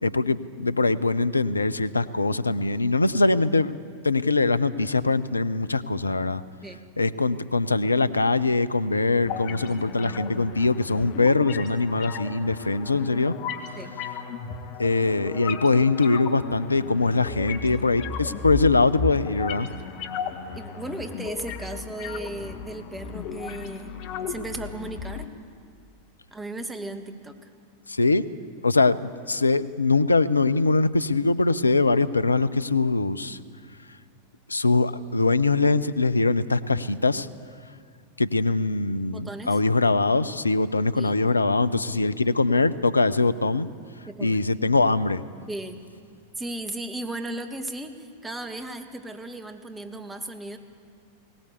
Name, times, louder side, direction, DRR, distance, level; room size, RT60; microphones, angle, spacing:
voice 1, 0.0-3.8 4.0-6.4 7.0-13.4 14.8-19.7 27.9-28.2 28.6-33.4 34.5-37.3 38.2-43.7 44.2-45.2, left 3 dB, 80° left, 15 dB, 0.7 m, -22 dB
sound 1, 9.2-25.2, left 6 dB, 45° left, 1.7 m, -35 dB
voice 2, 20.5-23.9 24.3-25.3 26.3-27.4 39.1-39.6 40.9-41.2 44.1-44.4 45.5-45.8 46.4-50.6, right 2 dB, 10° right, 7 dB, 2.0 m, -36 dB
21.0 x 18.0 x 8.1 m, 2.2 s
figure-of-eight pair, 90°, 0 cm